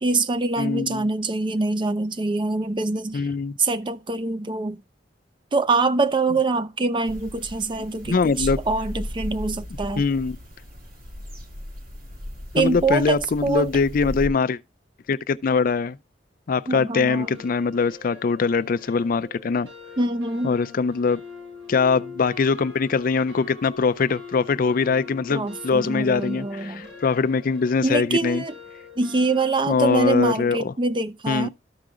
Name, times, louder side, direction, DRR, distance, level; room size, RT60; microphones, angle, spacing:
voice 1, 0.0-3.2 3.6-4.8 5.5-10.0 12.5-13.7 16.7-17.3 20.0-20.6 25.3-26.9 27.8-28.5 29.0-31.5, right 3 dB, 30° right, 0.5 m, -24 dB
voice 2, 0.6-1.1 3.1-3.5 8.1-8.6 10.0-10.4 12.6-14.6 15.1-16.0 16.5-19.7 20.4-21.2 21.7-28.4 29.7-30.7 31.3-31.5, left 5 dB, 50° left, 0.4 m, -22 dB
sound 1, 7.0-14.3, left 1 dB, 55° right, 2.3 m, -36 dB
sound 2, 17.1-30.2, left 4 dB, 90° right, 4.1 m, -43 dB
13.0 x 4.8 x 3.8 m
head